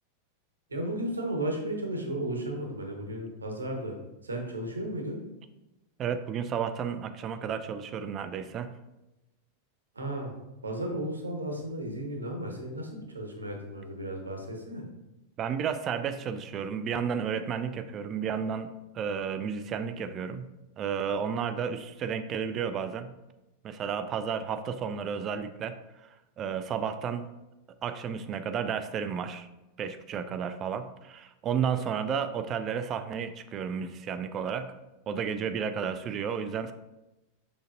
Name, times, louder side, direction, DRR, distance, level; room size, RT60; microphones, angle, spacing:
voice 1, 0.7-4.0 4.2-5.2 9.9-10.3 10.6-14.8, right 1 dB, 75° right, 2 dB, 1.1 m, -34 dB
voice 2, 6.0-8.7 15.4-20.5 20.8-23.1 23.6-25.7 26.0-27.2 27.8-29.5 29.8-34.7 35.1-36.7, right 7 dB, 30° right, 10 dB, 0.4 m, -32 dB
6.3 x 5.7 x 2.6 m, 0.99 s
figure-of-eight pair, 90°, 0 cm